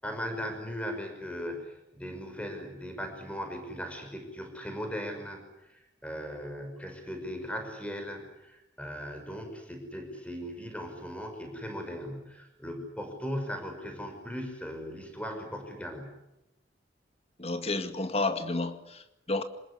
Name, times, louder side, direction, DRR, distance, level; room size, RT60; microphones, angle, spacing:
voice 1, 0.0-16.2, equal, 5° left, 5 dB, 5.7 m, -38 dB
voice 2, 17.4-19.4, left 2 dB, 35° left, 9 dB, 2.1 m, -31 dB
26.5 x 21.0 x 10.0 m, 0.89 s
head